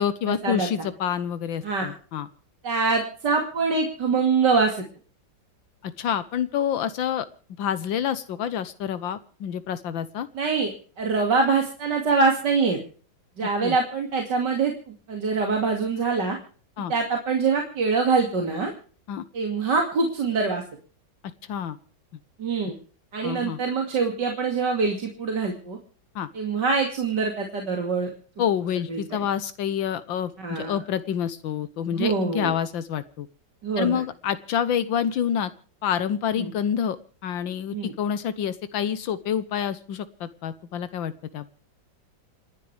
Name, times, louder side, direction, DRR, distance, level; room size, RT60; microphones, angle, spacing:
voice 1, 0.0-2.3 5.8-7.3 7.6-10.3 13.6-13.8 16.8-16.9 19.1-19.2 21.5-21.8 23.2-23.6 26.2-26.3 28.4-33.3 33.8-35.5 35.8-37.0 37.2-41.5, left 9 dB, 80° left, 13 dB, 1.6 m, -27 dB
voice 2, 2.6-4.8 10.3-12.8 13.4-16.4 16.9-18.7 19.3-20.6 22.4-22.7 23.1-25.8 26.3-28.1 28.9-29.0 30.4-30.7 31.9-32.5 33.6-34.0 36.3-36.5 37.7-37.9, right 4 dB, 60° right, 2 dB, 3.0 m, -24 dB
28.5 x 11.0 x 3.4 m, 0.42 s
omnidirectional pair, 2.1 m